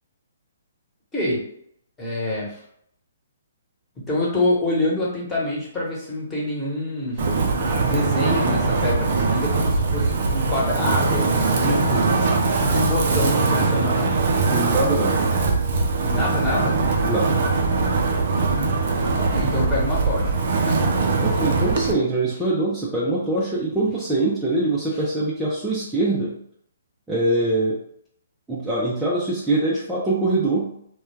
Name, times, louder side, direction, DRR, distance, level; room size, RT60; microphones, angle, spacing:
voice 1, 1.1-1.4 2.0-2.6 4.0-7.2 7.8-12.2 12.6-14.2 16.0-16.8 19.2-21.0, left 1 dB, 15° left, -6 dB, 1.1 m, -26 dB
Wind, 7.2-21.9, right 3 dB, 55° right, 0.5 m, -21 dB
voice 2, 14.5-15.3 17.0-17.4 21.2-26.3 27.1-27.8 28.5-30.7, right 2 dB, 5° right, -8 dB, 0.5 m, -23 dB
2.2 x 2.2 x 3.2 m, 0.68 s
hypercardioid pair, 145°, 0 cm